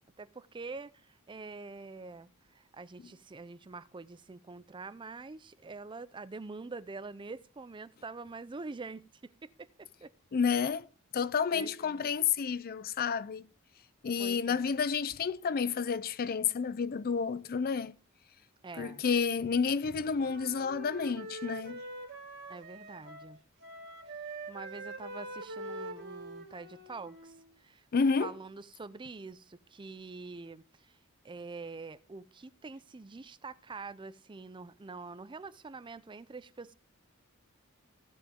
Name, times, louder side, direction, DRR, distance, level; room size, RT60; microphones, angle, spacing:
voice 1, 0.2-10.1 11.5-12.0 14.2-14.7 18.6-19.0 22.5-23.4 24.0-27.8 28.2-30.9 31.2-36.7, right 3 dB, 20° right, 0.5 m, -45 dB
voice 2, 10.3-10.9 11.1-13.5 14.0-17.9 18.8-21.8 27.9-28.3, left 6 dB, 45° left, 0.4 m, -30 dB
Wind instrument woodwind instrument, 19.7-23.4 23.6-27.5, right 2 dB, 60° right, 2.5 m, -44 dB
16.0 x 7.1 x 3.7 m
head